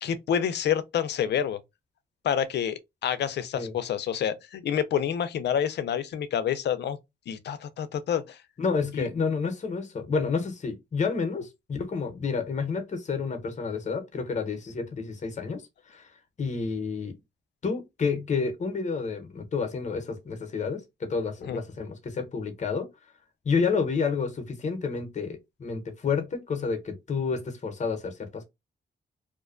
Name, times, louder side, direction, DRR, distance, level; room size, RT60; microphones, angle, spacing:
voice 1, 0.0-1.6 2.2-7.0 7.3-8.4 8.9-9.1 21.5-21.6, left 9 dB, 70° left, 0.4 m, -28 dB
voice 2, 8.6-15.6 15.9-16.1 16.4-17.1 17.6-22.9 23.4-28.4, left 5 dB, 40° left, 0.7 m, -30 dB
2.4 x 2.2 x 2.4 m
cardioid pair, 95°, 18 cm